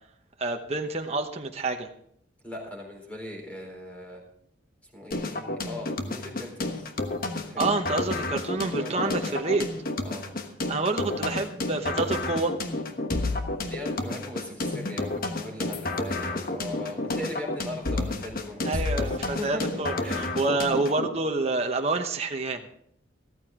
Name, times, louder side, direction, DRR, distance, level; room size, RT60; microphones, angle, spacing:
voice 1, 0.4-1.9 7.6-9.7 10.7-12.5 18.6-19.9 20.4-22.6, right 3 dB, 35° right, 3 dB, 1.0 m, -27 dB
voice 2, 2.4-4.2 4.8-6.9 7.5-7.8 8.8-9.3 10.0-10.2 13.7-20.3, left 1 dB, 5° left, 0 dB, 4.0 m, -39 dB
sound 1, 5.1-21.1, left 2 dB, 50° left, 1.2 m, -31 dB
15.0 x 14.0 x 3.7 m, 0.67 s
head